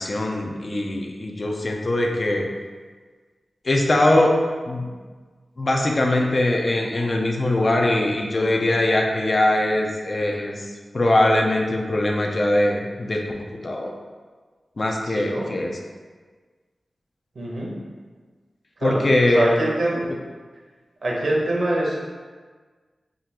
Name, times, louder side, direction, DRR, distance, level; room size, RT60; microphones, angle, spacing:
voice 1, 0.0-2.5 3.6-4.4 4.7-4.9 5.6-13.9 14.8-15.8 18.8-19.4 20.1-20.2, left 1 dB, 50° left, 1 dB, 0.4 m, -21 dB
voice 2, 15.0-15.5 17.4-17.7 18.8-19.1 19.3-20.0 21.0-22.0, right 1 dB, 75° right, -3 dB, 0.7 m, -24 dB
3.7 x 2.4 x 2.8 m, 1.5 s
cardioid pair, 60°, 0 cm